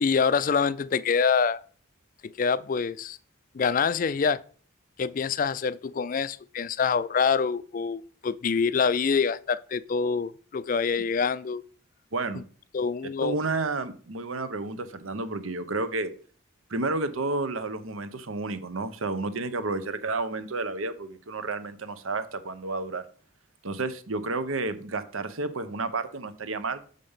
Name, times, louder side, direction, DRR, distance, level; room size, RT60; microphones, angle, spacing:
voice 1, 0.0-1.6 2.2-3.2 3.5-4.4 5.0-11.6 12.3-12.4 12.7-13.4, left 5 dB, 40° left, 0.3 m, -26 dB
voice 2, 12.1-12.4 13.2-16.1 16.7-23.0 23.6-26.8, right 3 dB, 80° right, 0.9 m, -31 dB
6.7 x 5.2 x 5.5 m
head